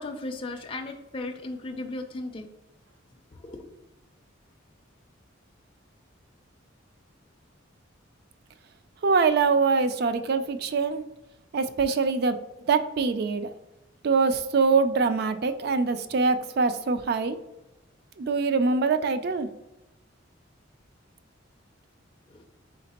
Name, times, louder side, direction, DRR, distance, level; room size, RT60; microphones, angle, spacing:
voice 1, 0.0-2.5 3.4-3.7 22.3-22.4, left 2 dB, 25° left, 3 dB, 0.4 m, -36 dB
voice 2, 9.0-11.0 11.5-12.4 12.7-13.5 14.0-17.4 18.2-19.5, right 4 dB, 50° right, 10 dB, 0.3 m, -24 dB
4.2 x 3.9 x 2.8 m, 0.95 s
head